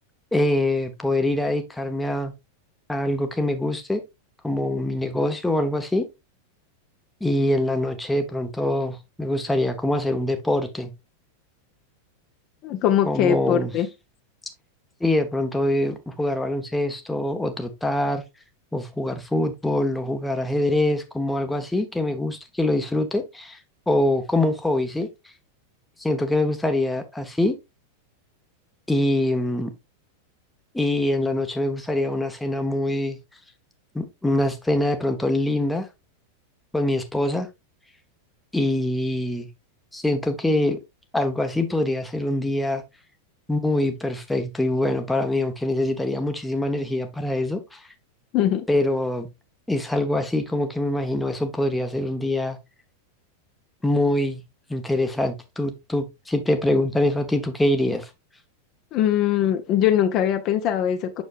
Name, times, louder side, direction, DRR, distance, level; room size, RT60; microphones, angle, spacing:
voice 1, 0.3-2.3 2.9-4.0 4.4-6.0 7.2-10.9 13.1-13.7 15.0-18.2 18.7-23.6 23.9-25.1 26.0-27.5 28.9-29.7 30.7-33.2 33.9-35.9 36.7-37.5 38.5-39.5 39.9-40.8 41.1-42.8 43.5-47.9 48.7-49.3 49.7-52.6 53.8-54.4 54.7-58.1, left 1 dB, 5° left, 1.0 m, -24 dB
voice 2, 12.6-13.9 48.3-48.6 58.9-61.2, left 10 dB, 40° left, 0.9 m, -21 dB
7.1 x 6.3 x 2.4 m
figure-of-eight pair, 90°, 0 cm